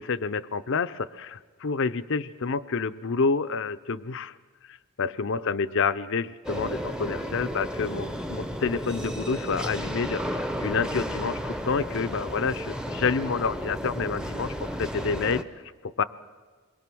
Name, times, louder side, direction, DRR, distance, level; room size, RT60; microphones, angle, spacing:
voice 1, 0.0-4.3 4.7-15.4 15.8-16.0, left 5 dB, 60° left, 13 dB, 0.6 m, -28 dB
sound 1, 6.4-15.4, equal, 5° right, 0.8 m, -33 dB
28.0 x 22.0 x 6.1 m, 1.4 s
head